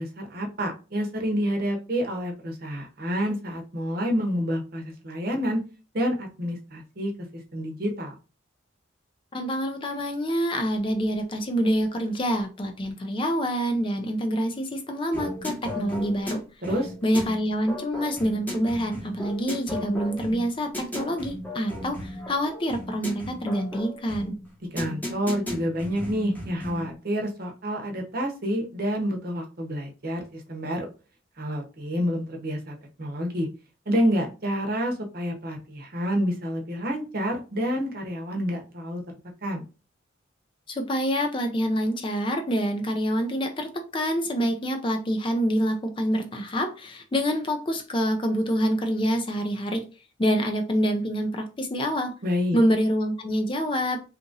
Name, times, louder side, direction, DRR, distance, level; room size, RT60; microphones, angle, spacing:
voice 1, 0.0-5.6 5.9-8.1 16.6-16.9 24.7-30.9 31.4-33.5 33.9-39.0 39.4-39.6 52.2-52.6, equal, 45° right, 0.8 m, -28 dB
voice 2, 9.3-16.4 17.0-24.3 40.7-49.9 50.2-52.1 52.5-54.0, equal, 25° left, 0.4 m, -26 dB
sound 1, 15.1-26.9, left 1 dB, 10° left, 0.9 m, -35 dB
2.9 x 2.5 x 3.8 m
head